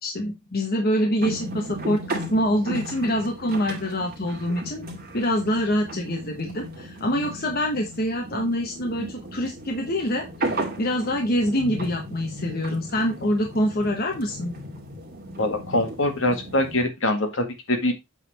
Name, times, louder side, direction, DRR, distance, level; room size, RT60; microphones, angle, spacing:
voice 1, 0.0-4.9 5.1-14.6, equal, 45° left, 2 dB, 1.2 m, -25 dB
sound 1, 1.2-16.8, right 1 dB, 45° right, 2.3 m, -35 dB
voice 2, 15.4-17.9, left 1 dB, 65° left, 5 dB, 1.8 m, -24 dB
8.3 x 4.1 x 4.2 m, 0.22 s
head